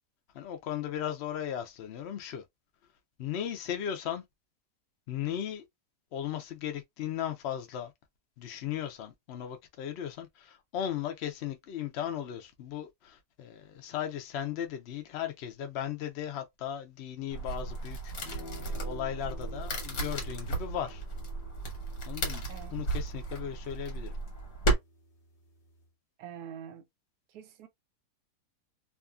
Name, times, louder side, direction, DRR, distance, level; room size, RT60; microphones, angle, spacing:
voice 1, 0.3-2.4 3.2-4.2 5.1-5.6 6.1-7.9 8.4-21.0 22.1-24.2, left 10 dB, 75° left, 0.6 m, -37 dB
sound 1, 17.3-24.8, right 2 dB, 60° left, 1.5 m, -34 dB
sound 2, 18.1-25.9, left 2 dB, 40° left, 0.9 m, -52 dB
voice 2, 26.2-26.9 27.3-27.7, right 9 dB, 75° right, 1.0 m, -45 dB
2.7 x 2.5 x 2.3 m
omnidirectional pair, 1.8 m